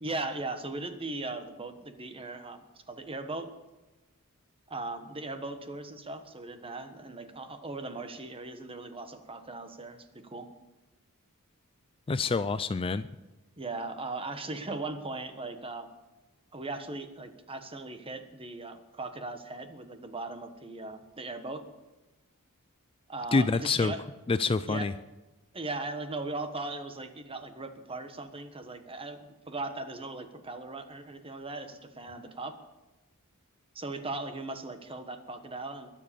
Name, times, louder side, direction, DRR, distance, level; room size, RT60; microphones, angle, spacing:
voice 1, 0.0-3.5 4.7-10.5 13.6-15.9 16.5-21.6 23.1-24.0 24.7-24.9 25.5-32.6 33.7-35.9, right 2 dB, 25° right, 8 dB, 1.3 m, -38 dB
voice 2, 12.1-13.1 23.3-23.9 24.3-24.9, left 4 dB, 25° left, 13 dB, 0.4 m, -26 dB
22.0 x 7.6 x 6.9 m, 1.1 s
head